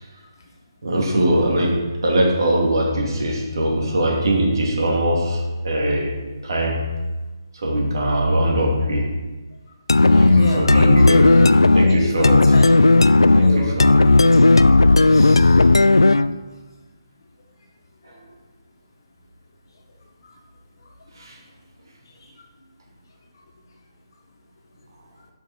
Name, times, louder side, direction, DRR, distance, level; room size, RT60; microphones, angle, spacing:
voice 1, 0.8-6.1 6.4-7.0 7.5-9.1 10.1-11.2 11.7-12.4 13.3-14.0 18.1-18.2 21.2-21.4, right 1 dB, 60° right, -2 dB, 2.9 m, -21 dB
sound 1, 9.9-16.4, left 2 dB, 80° left, 0.4 m, -13 dB
voice 2, 10.1-11.5 11.8-13.0 13.4-14.5 14.8-15.7 20.2-20.3 20.8-21.3 22.2-22.5 23.3-23.4, left 2 dB, 55° left, 1 dB, 1.8 m, -30 dB
12.5 x 5.9 x 4.6 m, 1.2 s
figure-of-eight pair, 145°, 2 cm